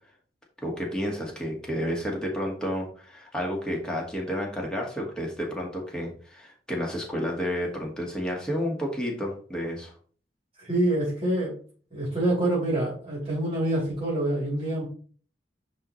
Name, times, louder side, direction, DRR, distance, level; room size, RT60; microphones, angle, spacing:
voice 1, 0.6-9.9, equal, 5° left, -2 dB, 1.8 m, -31 dB
voice 2, 10.6-11.5 11.9-14.8, right 1 dB, 35° right, -6 dB, 2.6 m, -26 dB
9.5 x 3.2 x 4.1 m, 0.43 s
head